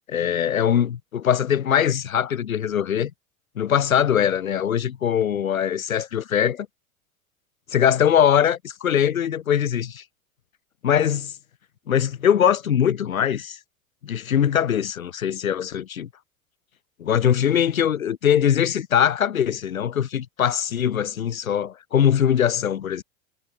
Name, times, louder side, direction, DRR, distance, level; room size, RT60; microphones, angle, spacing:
voice 1, 0.1-3.1 3.6-6.7 7.7-10.0 10.8-11.4 11.9-13.6 14.0-16.1 17.0-23.0, left 9 dB, 85° left, 0.6 m, -21 dB
figure-of-eight pair, 85°, 41 cm